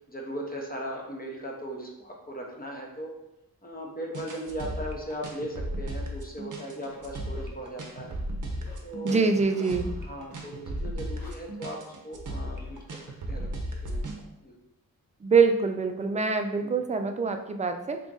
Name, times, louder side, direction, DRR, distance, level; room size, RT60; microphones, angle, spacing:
voice 1, 0.1-3.1 3.6-8.1 8.8-9.7 10.0-13.0 13.3-13.5 13.8-14.0 14.4-14.5 16.6-16.9, equal, 25° left, -1 dB, 0.7 m, -38 dB
sound 1, 4.1-14.2, right 1 dB, 55° right, 0.6 m, -35 dB
Scratching (performance technique), 6.9-7.4 8.0-8.2 8.5-8.7 9.3-9.7 10.0-10.4 10.7-10.8 11.1-11.3, left 1 dB, 70° left, 1.0 m, -48 dB
voice 2, 9.0-9.9 15.2-18.0, right 4 dB, 20° right, 7 dB, 0.3 m, -24 dB
3.0 x 2.5 x 3.7 m, 0.88 s
cardioid pair, 50°, 37 cm